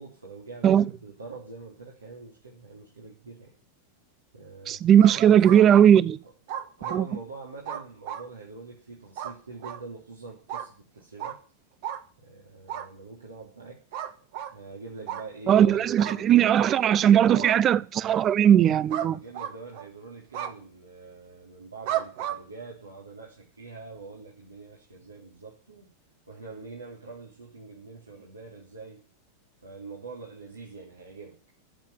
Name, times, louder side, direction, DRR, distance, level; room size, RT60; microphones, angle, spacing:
voice 1, 0.0-3.5 4.3-4.8 5.3-5.8 6.2-6.3 6.8-11.4 12.2-13.9 14.5-16.8 17.2-17.7 19.1-25.9 26.3-29.0 29.6-31.4, right 3 dB, 75° right, 3.5 m, -44 dB
voice 2, 4.7-6.0 6.9-7.0 15.5-19.2, right 9 dB, 30° right, 0.7 m, -18 dB
sound 1, 5.0-5.8 6.5-7.0 7.7-8.3 9.2-9.3 9.6-9.8 10.5-10.7 11.2-11.4 11.8-12.0 12.7-12.9 13.9-14.5 15.1-15.2 16.0-16.2 16.6-16.8 17.4-17.6 18.9-19.1 19.3-19.9 20.3-20.5 21.9-22.4, right 10 dB, 50° right, 1.7 m, -33 dB
14.5 x 7.6 x 9.5 m
figure-of-eight pair, 90°, 0 cm